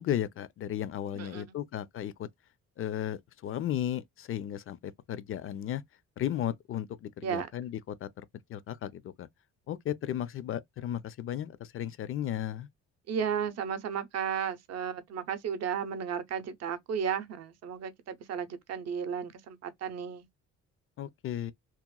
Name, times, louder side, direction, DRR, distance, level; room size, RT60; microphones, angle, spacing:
voice 1, 0.0-2.3 2.8-5.8 6.2-8.1 8.5-9.3 9.7-12.7 21.0-21.5, left 11 dB, 45° left, 0.4 m, -35 dB
voice 2, 1.2-1.6 7.2-7.5 13.1-20.3, right 7 dB, 55° right, 0.6 m, -34 dB
2.9 x 2.0 x 2.2 m
cardioid pair, 90°, 30 cm